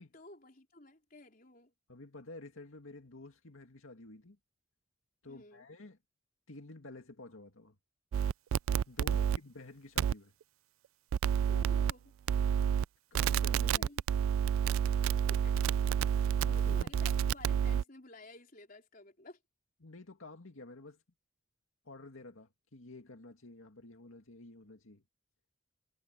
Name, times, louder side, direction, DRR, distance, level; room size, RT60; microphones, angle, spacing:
voice 1, 0.0-1.7 5.3-5.7 9.0-9.3 11.5-12.1 13.7-14.0 15.3-15.5 16.6-19.4, left 2 dB, 45° left, 4.2 m, -54 dB
voice 2, 1.9-4.4 5.2-6.0 6.5-7.8 8.9-10.3 13.1-13.9 16.4-16.9 19.8-21.0 21.8-25.0, left 2 dB, 90° left, 2.2 m, -51 dB
sound 1, 8.1-9.4 10.0-10.1 11.1-11.9 12.3-12.8 13.1-17.8, right 8 dB, 85° right, 0.3 m, -29 dB
head